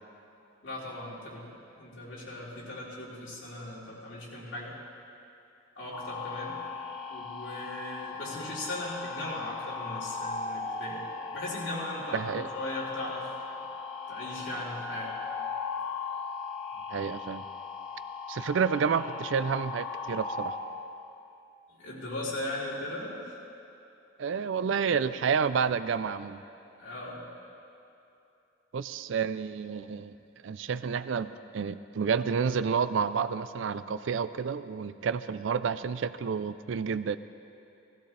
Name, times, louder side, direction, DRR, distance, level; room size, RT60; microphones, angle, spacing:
voice 1, 0.6-1.5 1.8-4.8 5.8-6.6 7.1-11.1 11.3-13.3 14.1-15.1 21.8-23.4 26.8-27.2, left 1 dB, 70° left, -7 dB, 3.6 m, -38 dB
sound 1, 5.9-20.5, left 5 dB, 20° left, 2.4 m, -38 dB
voice 2, 12.1-12.5 16.9-17.4 18.3-20.6 24.2-26.4 28.7-30.2 30.4-37.2, right 6 dB, 70° right, 14 dB, 0.4 m, -30 dB
16.5 x 15.5 x 3.3 m, 2.7 s
head